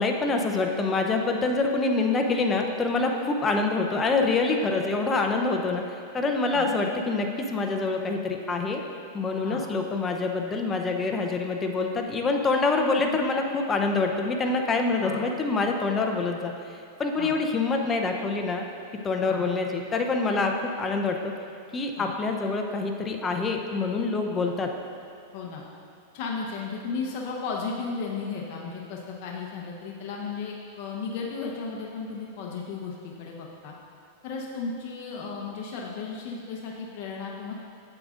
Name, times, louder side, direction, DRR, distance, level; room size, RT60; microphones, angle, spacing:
voice 1, 0.0-5.8 6.1-8.8 9.1-16.5 17.0-18.7 19.0-21.2 21.7-24.7, left 3 dB, 20° left, 3 dB, 0.6 m, -26 dB
voice 2, 15.0-15.3 17.2-17.3 19.2-19.5 22.0-22.1 25.3-25.6 26.1-33.7 34.2-37.5, left 4 dB, 55° left, -2 dB, 0.8 m, -34 dB
8.7 x 7.6 x 2.5 m, 2.4 s
hypercardioid pair, 130°, 0 cm